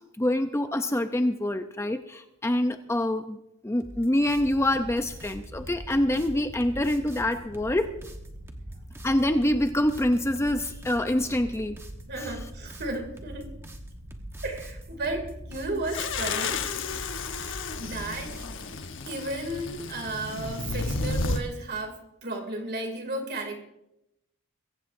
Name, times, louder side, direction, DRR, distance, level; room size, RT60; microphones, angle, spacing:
voice 1, 0.2-3.4 3.6-7.9 9.0-11.8 12.2-12.3, left 1 dB, 10° left, 7 dB, 0.6 m, -26 dB
sound 1, 3.8-18.7, right 1 dB, 10° right, 1.2 m, -45 dB
sound 2, 4.2-18.6, right 1 dB, 85° right, 4.7 m, -44 dB
voice 2, 12.1-13.5 14.4-16.7 17.8-18.4 19.1-23.6, right 2 dB, 50° right, 4 dB, 2.7 m, -34 dB
sound 3, 15.9-21.4, left 4 dB, 60° left, 1.1 m, -32 dB
23.0 x 15.0 x 2.6 m, 0.87 s
head